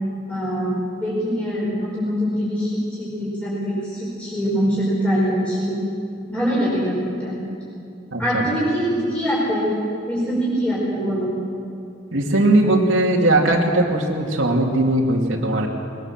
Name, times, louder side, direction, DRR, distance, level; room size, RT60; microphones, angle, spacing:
voice 1, 0.3-5.8 6.3-7.4 8.2-9.7 10.1-11.3, equal, 5° left, -8 dB, 5.5 m, -23 dB
voice 2, 8.1-8.4 12.1-15.7, right 1 dB, 85° right, -2 dB, 2.6 m, -19 dB
21.0 x 19.5 x 7.4 m, 2.5 s
head